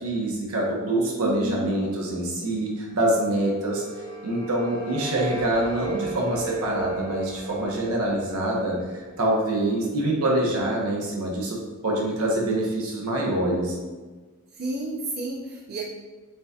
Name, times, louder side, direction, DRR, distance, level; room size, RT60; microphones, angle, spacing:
voice 1, 0.0-3.8 4.2-8.8 9.2-11.6 11.8-13.8, right 1 dB, 80° right, -2 dB, 1.1 m, -25 dB
voice 2, 1.2-1.7 9.6-10.0 14.5-15.8, right 1 dB, 45° right, -5 dB, 0.6 m, -32 dB
sound 1, 3.1-10.1, right 3 dB, 55° left, 1.0 m, -36 dB
7.0 x 2.8 x 2.4 m, 1.3 s
head